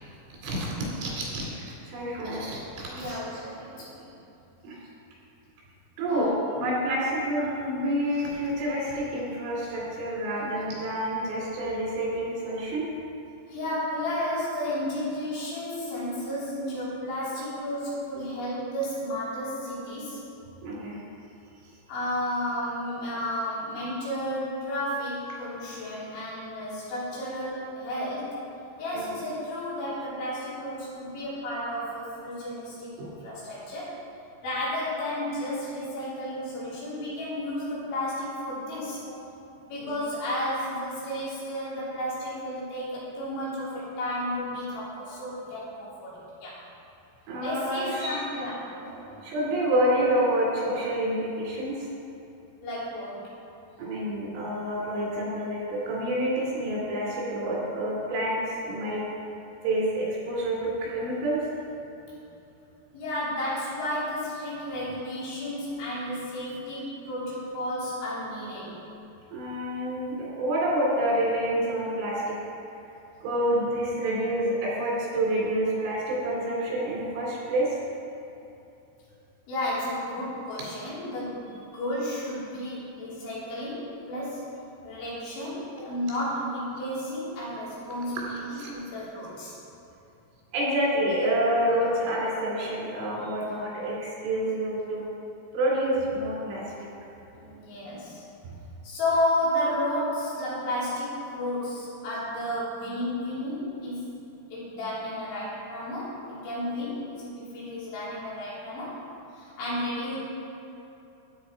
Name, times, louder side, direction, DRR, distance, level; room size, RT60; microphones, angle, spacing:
voice 1, 0.3-3.2 4.6-4.8 6.0-12.8 20.6-21.0 28.9-29.0 33.0-33.1 39.8-39.9 47.3-48.2 49.2-51.7 53.8-59.0 59.6-61.4 69.3-72.3 73.2-77.7 88.5-88.7 90.5-95.0 95.5-96.9 98.5-98.6, right 1 dB, 85° right, -5 dB, 5.6 m, -28 dB
voice 2, 2.9-4.1 6.1-6.3 13.5-20.2 21.9-28.4 28.8-34.0 34.4-39.0 39.6-46.6 47.4-49.2 52.6-53.4 62.9-68.8 79.5-84.5 84.8-89.6 93.4-93.7 97.3-98.3 98.8-104.1 104.5-109.0 109.3-110.2, left 1 dB, 80° left, -8 dB, 5.9 m, -32 dB
13.0 x 9.5 x 4.7 m, 2.8 s
omnidirectional pair, 5.4 m